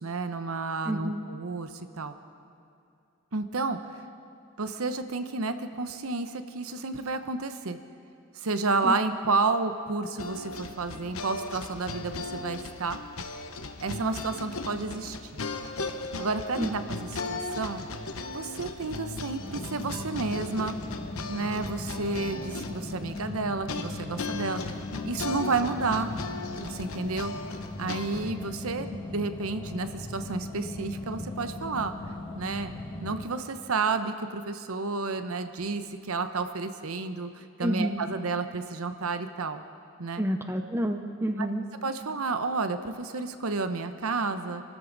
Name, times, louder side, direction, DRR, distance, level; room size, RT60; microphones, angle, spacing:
voice 1, 0.0-2.1 3.3-3.9 4.6-7.8 8.3-13.0 13.8-15.4 16.2-17.8 18.3-20.8 21.3-24.6 25.0-26.1 26.6-27.3 27.8-31.9 32.4-32.7 33.0-39.6 40.0-40.2 41.4-41.5 41.8-44.6, right 3 dB, 75° right, 9 dB, 0.9 m, -31 dB
voice 2, 0.8-1.2 8.8-8.9 16.6-16.7 37.6-38.0 40.2-41.6, equal, 10° right, 6 dB, 0.6 m, -29 dB
sound 1, 10.2-28.3, left 3 dB, 75° left, 1.0 m, -37 dB
sound 2, 19.4-33.3, left 2 dB, 20° left, 1.4 m, -39 dB
27.0 x 13.5 x 4.0 m, 2.5 s
head